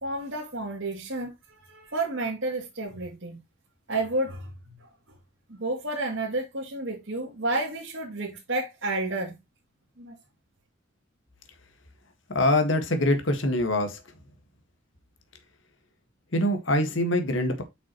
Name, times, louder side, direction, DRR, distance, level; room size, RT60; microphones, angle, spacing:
voice 1, 0.0-3.4 3.9-4.7 5.5-9.3 10.0-10.1, right 2 dB, 70° right, 2.8 m, -31 dB
voice 2, 12.3-14.0 16.3-17.6, left 1 dB, 70° left, 1.8 m, -24 dB
8.3 x 6.2 x 3.1 m
head